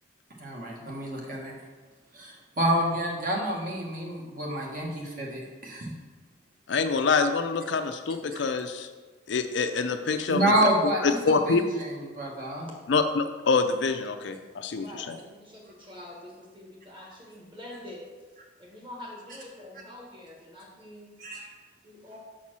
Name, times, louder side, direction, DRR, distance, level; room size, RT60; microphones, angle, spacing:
voice 1, 0.4-1.5 2.2-5.9 10.3-11.2 11.5-11.6 12.1-12.7 21.2-21.5, right 1 dB, 45° right, -1 dB, 1.3 m, -28 dB
voice 2, 6.7-8.9 9.3-10.5 10.8-11.6 12.9-15.2, left 4 dB, 65° left, 8 dB, 0.5 m, -26 dB
voice 3, 14.7-18.1 18.6-21.1 21.8-22.2, left 1 dB, 25° right, -2 dB, 1.5 m, -45 dB
6.3 x 4.3 x 6.0 m, 1.3 s
head